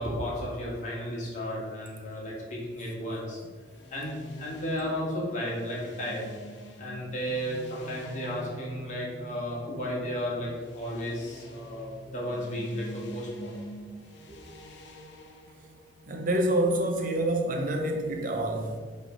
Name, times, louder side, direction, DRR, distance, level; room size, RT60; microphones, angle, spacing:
voice 1, 0.0-3.4 3.9-6.3 6.8-13.6, equal, 40° left, -4 dB, 1.7 m, -33 dB
sound 1, 3.6-17.2, right 1 dB, 65° left, 0.9 m, -47 dB
voice 2, 16.1-18.8, right 1 dB, 45° right, 3 dB, 0.6 m, -27 dB
5.9 x 3.4 x 5.2 m, 1.5 s
head